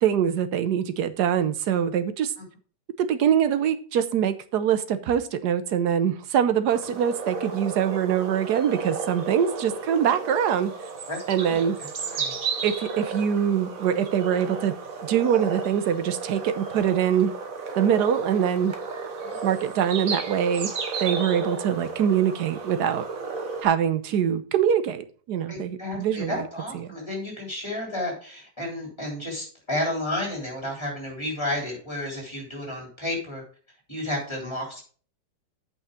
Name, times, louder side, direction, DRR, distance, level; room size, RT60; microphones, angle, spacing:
voice 1, 0.0-2.3 3.0-10.7 11.3-11.8 12.6-14.7 15.0-17.3 17.8-18.7 19.4-23.0 23.6-26.4 26.7-26.9, right 9 dB, 75° right, 11 dB, 1.3 m, -24 dB
sound 1, 6.7-23.6, right 4 dB, 55° right, 1.5 m, -33 dB
voice 2, 11.1-11.6 12.0-12.3 25.5-33.4 33.9-34.8, left 1 dB, 15° left, -1 dB, 3.6 m, -32 dB
8.4 x 5.6 x 5.0 m, 0.42 s
omnidirectional pair, 1.8 m